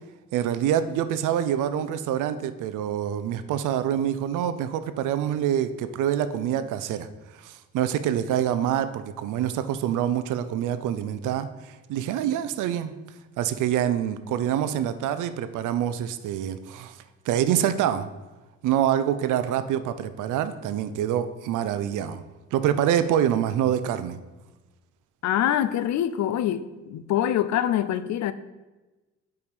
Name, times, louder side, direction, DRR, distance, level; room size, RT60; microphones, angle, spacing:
voice 1, 0.3-7.1 7.4-11.5 11.9-12.9 13.4-17.0 17.3-18.1 18.6-22.2 22.5-24.2, right 10 dB, 85° right, 0.5 m, -26 dB
voice 2, 25.2-28.3, left 11 dB, 65° left, 0.5 m, -25 dB
5.4 x 4.6 x 4.9 m
cardioid pair, 90°, 30 cm